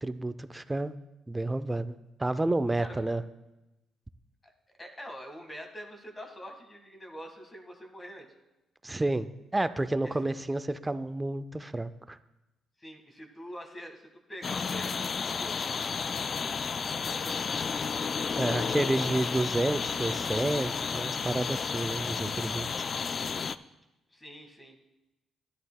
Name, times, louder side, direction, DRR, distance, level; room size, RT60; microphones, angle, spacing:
voice 1, 0.0-0.9 1.3-3.2 8.8-12.2 18.3-22.9, right 2 dB, 15° right, 13 dB, 0.4 m, -30 dB
voice 2, 4.8-8.3 10.0-10.1 12.8-15.6 16.4-16.7 17.0-17.9 24.1-24.7, equal, 20° left, 4 dB, 1.7 m, -45 dB
sound 1, 14.4-23.6, left 5 dB, 45° left, 0.3 m, -32 dB
13.0 x 11.0 x 2.3 m, 0.99 s
cardioid pair, 90°, 0 cm